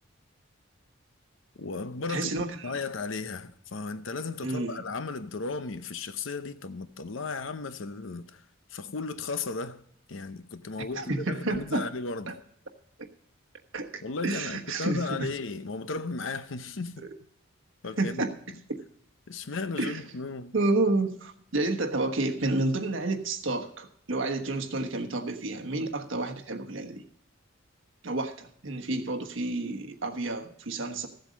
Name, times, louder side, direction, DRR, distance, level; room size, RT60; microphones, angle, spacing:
voice 1, 1.6-2.3 2.6-8.4 8.7-9.8 10.1-12.4 14.0-17.0 17.8-18.2 19.3-20.5, left 4 dB, 65° left, 0.8 m, -35 dB
voice 2, 2.1-2.7 4.4-4.7 10.9-11.9 12.3-12.4 13.7-15.3 18.0-18.4 18.7-18.8 19.8-20.0 20.5-27.0 28.0-31.1, right 2 dB, 65° right, 1.2 m, -30 dB
15.0 x 7.9 x 5.2 m
head